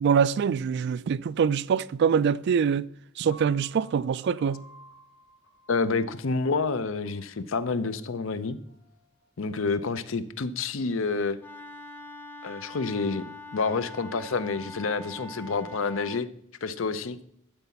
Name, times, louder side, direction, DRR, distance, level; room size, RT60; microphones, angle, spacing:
voice 1, 0.0-2.9 3.2-4.6, right 7 dB, 55° right, 0.3 m, -24 dB
Piano, 3.3-9.5, right 1 dB, 85° left, 2.3 m, -55 dB
voice 2, 5.7-8.6 9.4-11.4 12.4-13.2 13.5-16.3 16.6-17.2, left 4 dB, 70° left, 0.6 m, -28 dB
Wind instrument woodwind instrument, 11.4-16.2, left 2 dB, 10° left, 0.5 m, -43 dB
12.0 x 4.1 x 5.8 m
head